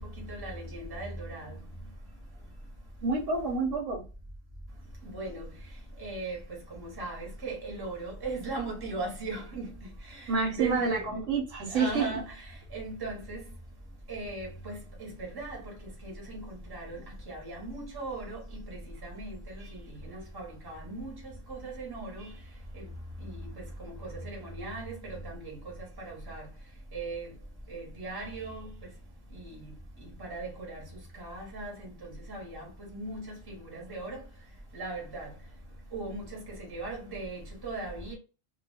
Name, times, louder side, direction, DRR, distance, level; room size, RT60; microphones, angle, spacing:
voice 1, 0.9-1.5 5.1-5.3 6.0-6.4 7.0-9.7 10.5-10.8 11.7-12.2 12.7-13.4 14.1-14.8 15.4-15.6 16.7-16.8 17.3-17.6 17.9-18.4 19.0-19.3 20.3-21.1 21.6-22.2 24.6-24.8 26.3-26.4 26.9-27.2 27.7-28.6 30.3-30.5 31.2-31.7 32.3-32.6 32.9-33.1 33.9-34.1 34.8-35.3 35.9-36.2 36.7-38.1, right 3 dB, 20° right, 0.9 m, -37 dB
voice 2, 3.0-4.0 10.3-12.1, right 4 dB, 70° right, 1.0 m, -28 dB
2.2 x 2.2 x 3.3 m
omnidirectional pair, 1.4 m